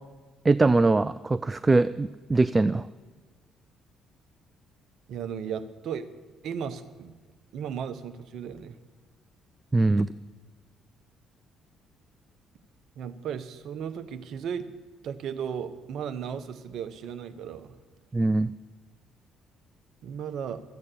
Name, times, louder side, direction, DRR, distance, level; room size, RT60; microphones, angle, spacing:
voice 1, 0.4-2.9 9.7-10.1 18.1-18.5, right 3 dB, 25° right, 15 dB, 0.4 m, -22 dB
voice 2, 5.1-6.1 6.4-7.1 7.5-8.8 13.0-14.7 15.0-17.8 20.0-20.6, right 7 dB, 60° right, 10 dB, 0.8 m, -35 dB
13.0 x 8.6 x 8.5 m, 1.4 s
figure-of-eight pair, 45°, 0 cm